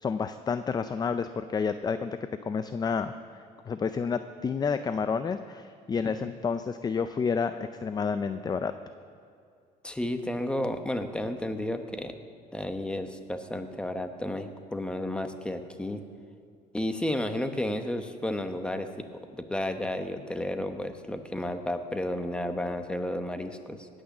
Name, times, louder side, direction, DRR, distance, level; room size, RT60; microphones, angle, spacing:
voice 1, 0.0-2.2 2.4-8.7, left 5 dB, 25° left, 10 dB, 0.4 m, -30 dB
voice 2, 9.8-12.1 12.5-16.0 16.7-23.9, left 1 dB, 5° left, 7 dB, 1.0 m, -32 dB
18.5 x 6.4 x 7.1 m, 2.5 s
cardioid pair, 110°, 17 cm